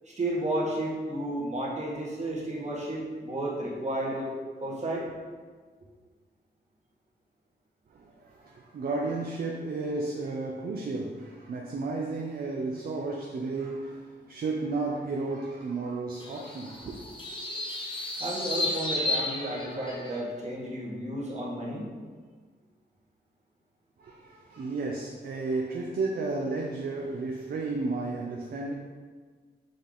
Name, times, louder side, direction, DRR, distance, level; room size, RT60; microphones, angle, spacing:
voice 1, 0.0-4.3 4.6-5.1 18.2-21.9, right 1 dB, 40° right, 1.5 m, -32 dB
voice 2, 7.9-17.1 24.0-28.7, right 3 dB, 55° right, 0.6 m, -33 dB
sound 1, 16.2-20.2, left 2 dB, 30° left, 0.9 m, -33 dB
6.7 x 3.6 x 3.9 m
wide cardioid pair, 140°, 18 cm